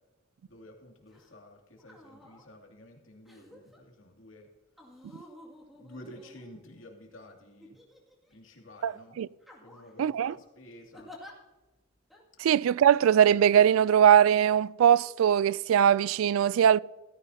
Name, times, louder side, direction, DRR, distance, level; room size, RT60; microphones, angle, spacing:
voice 1, 0.4-4.5 4.9-5.3 5.7-7.8 8.3-9.2 9.6-11.1, left 1 dB, 75° left, 2.6 m, -51 dB
sound 1, 1.1-1.3 1.8-2.5 3.3-3.8 4.8-6.8 7.6-8.4 8.8-9.0 9.4-10.0 10.9-11.3 12.1-12.2, left 1 dB, ahead, 2.2 m, -52 dB
voice 2, 8.8-9.3 10.0-10.4 12.4-16.8, right 9 dB, 85° right, 0.3 m, -21 dB
17.0 x 14.5 x 2.8 m
head